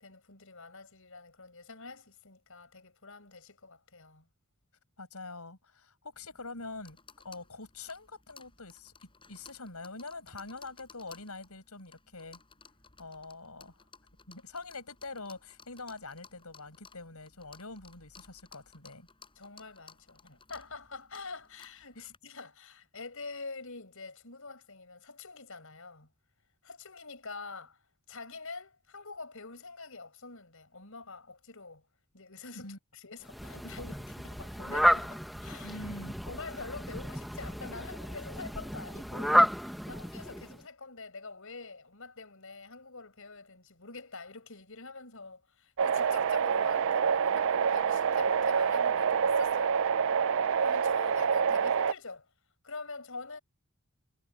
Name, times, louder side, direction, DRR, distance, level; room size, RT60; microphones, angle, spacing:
voice 1, 0.0-4.3 19.3-26.1 26.6-27.8 28.1-31.8 32.1-35.8 36.3-50.0 50.6-52.3 52.6-53.4, left 3 dB, 65° left, 6.6 m, -46 dB
voice 2, 5.0-7.0 7.2-12.4 13.0-13.9 14.3-19.1 22.0-22.1 32.6-32.8 35.6-36.1, left 3 dB, 85° left, 6.5 m, -44 dB
sound 1, 6.1-22.2, left 5 dB, 25° left, 5.8 m, -58 dB
Fowl, 33.3-40.6, equal, ahead, 1.2 m, -31 dB
sound 2, 45.8-51.9, right 6 dB, 60° right, 0.4 m, -27 dB
head